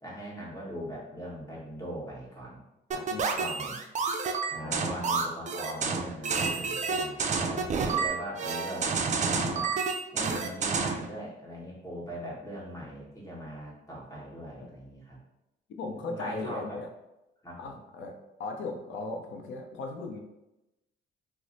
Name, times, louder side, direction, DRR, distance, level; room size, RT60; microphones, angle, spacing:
voice 1, 0.0-2.6 2.9-3.1 3.3-3.8 4.5-9.7 10.1-15.2 16.1-16.8 17.4-17.8, equal, 15° left, -5 dB, 1.4 m, -40 dB
sound 1, 2.9-11.1, right 5 dB, 35° right, 0.4 m, -29 dB
voice 2, 4.6-4.9 14.6-14.7 15.8-16.9 17.6-20.2, left 3 dB, 75° left, 3 dB, 0.6 m, -37 dB
3.0 x 2.1 x 3.9 m, 0.94 s
cardioid pair, 90°, 20 cm